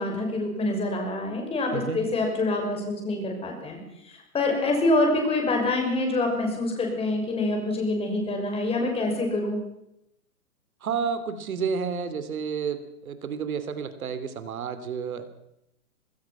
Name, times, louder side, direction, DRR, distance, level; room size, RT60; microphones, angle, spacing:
voice 1, 0.0-3.8 4.1-9.6, left 2 dB, 15° left, 2 dB, 6.1 m, -26 dB
voice 2, 1.7-2.1 10.8-15.2, right 6 dB, 70° right, 12 dB, 3.0 m, -30 dB
26.0 x 20.5 x 5.9 m, 0.83 s
hypercardioid pair, 145°, 44 cm